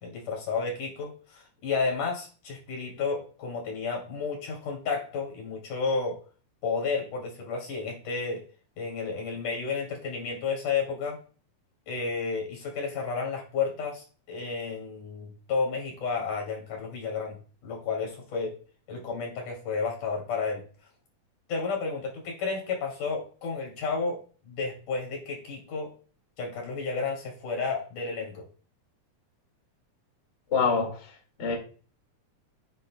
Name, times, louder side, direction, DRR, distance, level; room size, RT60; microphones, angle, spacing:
voice 1, 0.0-6.2 6.6-8.4 8.8-11.2 11.9-18.6 18.9-20.6 21.5-24.2 24.4-25.9 26.4-28.4, left 4 dB, 70° left, 4.1 m, -32 dB
voice 2, 30.5-31.1 31.4-31.6, left 5 dB, 25° left, 2.0 m, -25 dB
10.5 x 8.8 x 2.3 m
omnidirectional pair, 3.7 m